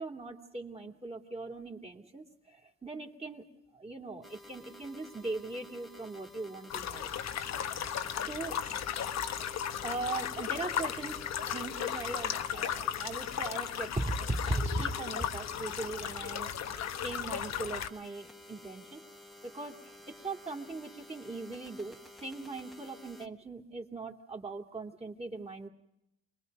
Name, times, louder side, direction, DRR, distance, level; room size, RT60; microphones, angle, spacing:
voice 1, 0.0-3.4 3.7-7.1 8.3-8.6 9.8-11.2 11.5-19.0 19.4-25.7, right 2 dB, 20° right, 1 dB, 2.4 m, -39 dB
sound 1, 4.2-23.3, left 1 dB, ahead, 1.5 m, -52 dB
sound 2, 6.7-17.9, left 9 dB, 60° left, 1.0 m, -36 dB
28.5 x 21.0 x 5.3 m, 0.85 s
cardioid pair, 90°, 30 cm